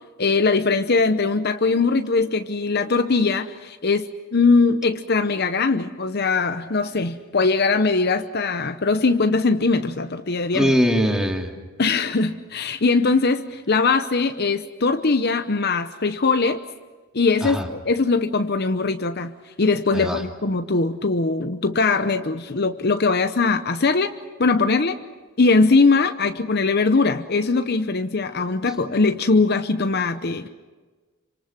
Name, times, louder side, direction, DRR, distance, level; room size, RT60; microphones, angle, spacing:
voice 1, 0.2-4.1 4.3-10.7 11.8-16.6 17.1-19.3 19.6-24.1 24.4-25.0 25.4-30.5, left 4 dB, 50° left, 9 dB, 0.8 m, -21 dB
voice 2, 10.5-11.5 17.4-17.7 19.9-20.2, equal, 5° right, 2 dB, 2.4 m, -21 dB
27.5 x 25.5 x 6.0 m, 1.3 s
head